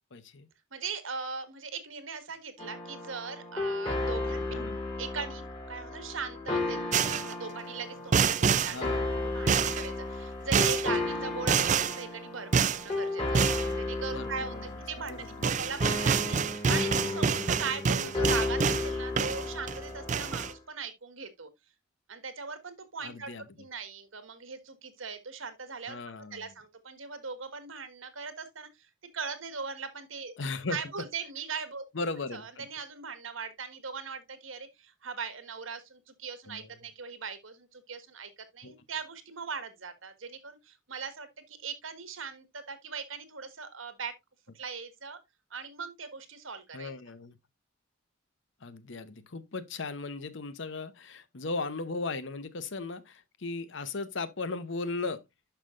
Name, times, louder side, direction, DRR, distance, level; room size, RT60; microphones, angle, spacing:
voice 1, 0.1-0.5 4.5-4.8 8.7-9.1 10.9-11.0 14.0-14.7 15.1-15.5 17.9-18.1 23.0-23.4 25.9-26.5 30.4-30.8 31.9-32.7 36.5-36.7 38.6-38.7 46.7-47.4 48.6-55.2, left 3 dB, 65° left, 0.8 m, -37 dB
voice 2, 0.7-4.5 5.0-8.8 9.2-21.5 22.1-23.3 23.6-26.0 26.3-30.3 30.7-31.8 32.3-44.1 44.5-45.2 45.5-46.9, right 5 dB, 85° right, 1.6 m, -40 dB
sound 1, 2.6-20.5, left 2 dB, 25° left, 3.4 m, -34 dB
sound 2, 6.9-7.3 8.1-8.8 9.5-9.9 10.5-10.9 11.5-12.0 12.5-12.8 13.3-13.7 15.1-15.2 15.4-18.9 19.2-19.8 20.1-20.5, right 6 dB, 40° right, 0.4 m, -27 dB
11.5 x 5.7 x 2.5 m
head